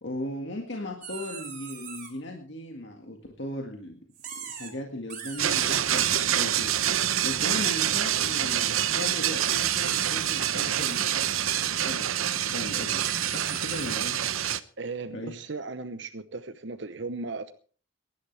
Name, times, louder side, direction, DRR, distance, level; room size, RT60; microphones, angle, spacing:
voice 1, 0.0-4.0 4.5-6.8 7.2-11.3 11.8-14.2 15.1-15.4, left 1 dB, 60° left, 1 dB, 1.9 m, -37 dB
sound 1, 1.0-2.1 4.1-4.7 5.0-6.2 6.7-6.9 8.5-9.0 9.4-10.4 10.8-11.0 12.3-14.0, right 7 dB, 40° right, 3.8 m, -41 dB
sound 2, 5.4-14.6, right 11 dB, 85° right, 0.8 m, -26 dB
voice 2, 14.8-17.5, right 3 dB, 60° right, 9 dB, 0.9 m, -36 dB
23.0 x 11.5 x 3.4 m, 0.42 s
head